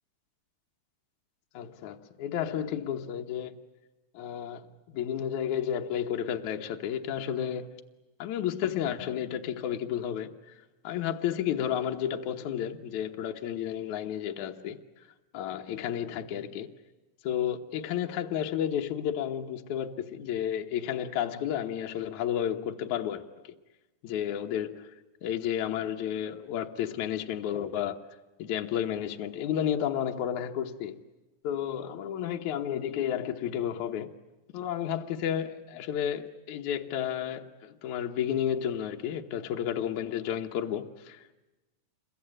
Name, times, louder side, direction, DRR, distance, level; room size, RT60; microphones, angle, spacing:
voice 1, 1.5-3.6 4.1-7.7 8.2-10.6 10.8-14.8 15.3-16.7 17.2-23.5 24.0-24.9 25.2-28.0 28.4-31.0 31.4-34.1 34.5-41.3, left 9 dB, 65° left, 2.2 m, -32 dB
28.5 x 23.0 x 8.9 m
omnidirectional pair, 4.2 m